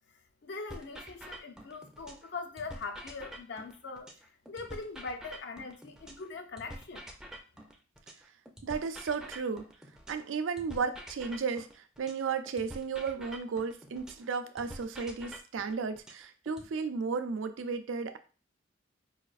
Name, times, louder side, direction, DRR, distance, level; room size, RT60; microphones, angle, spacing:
voice 1, 0.4-4.1 4.5-7.1, left 4 dB, 60° left, 0.5 m, -41 dB
sound 1, 0.7-2.3 2.6-6.3 6.6-10.3 10.6-14.3 14.6-16.7, right 1 dB, 5° right, 0.4 m, -47 dB
voice 2, 8.6-9.7 10.1-18.2, right 5 dB, 75° right, 0.4 m, -34 dB
4.9 x 2.4 x 2.4 m
head